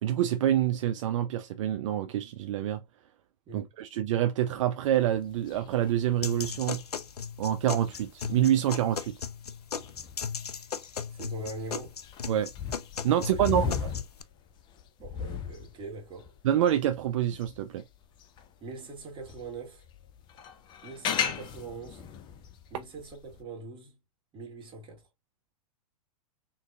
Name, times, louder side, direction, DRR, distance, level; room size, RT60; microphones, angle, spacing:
voice 1, 0.0-2.8 3.5-6.8 7.4-9.1 12.3-12.5 13.0-13.9 16.4-17.8, right 11 dB, 55° right, 0.4 m, -27 dB
sound 1, 4.9-18.5 19.0-23.4, left 7 dB, 25° left, 0.5 m, -38 dB
sound 2, 6.2-14.2, left 6 dB, 85° left, 0.4 m, -37 dB
voice 2, 11.1-12.0 13.3-13.8 15.0-16.3 18.6-19.8 20.8-22.0 22.7-23.9 24.3-25.0, right 3 dB, 25° right, 1.4 m, -42 dB
3.7 x 2.6 x 2.3 m
figure-of-eight pair, 105°, 20 cm